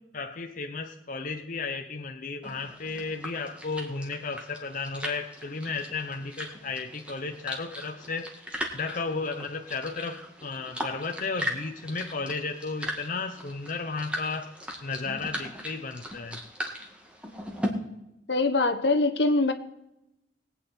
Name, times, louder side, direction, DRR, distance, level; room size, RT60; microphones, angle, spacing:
voice 1, 0.1-8.3 8.7-14.5 14.8-16.4, left 4 dB, 50° left, 0.8 m, -34 dB
sound 1, 2.4-17.7, equal, 5° right, 1.9 m, -38 dB
voice 2, 18.3-19.5, left 2 dB, 75° left, 1.1 m, -23 dB
21.0 x 8.8 x 4.4 m
head